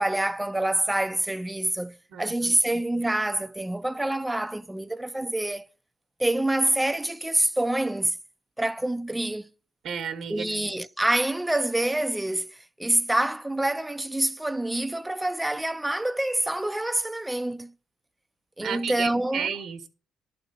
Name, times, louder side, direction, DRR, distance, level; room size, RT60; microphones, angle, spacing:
voice 1, 0.0-5.7 6.2-8.2 8.6-9.5 10.3-17.7 18.6-19.6, right 1 dB, 10° right, 0.4 m, -26 dB
voice 2, 2.1-2.5 9.8-10.5 18.6-19.9, right 7 dB, 75° right, 1.1 m, -32 dB
11.5 x 4.4 x 5.4 m
cardioid pair, 90°, 0 cm